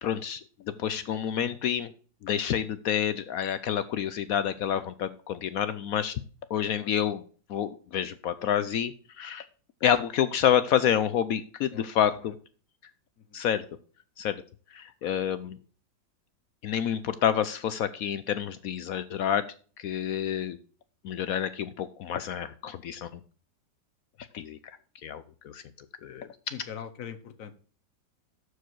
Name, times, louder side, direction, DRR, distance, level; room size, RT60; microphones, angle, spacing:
voice 1, 0.0-1.9 2.2-6.2 6.5-7.2 7.5-9.5 9.8-12.3 13.3-13.7 14.2-14.4 14.7-15.6 16.6-19.5 19.8-20.6 21.0-23.2 24.3-24.8 25.0-25.6 26.0-26.3, left 9 dB, 75° left, 13 dB, 0.8 m, -28 dB
voice 2, 26.5-27.5, left 8 dB, 55° left, 11 dB, 1.1 m, -42 dB
13.0 x 4.8 x 4.6 m, 0.41 s
omnidirectional pair, 2.1 m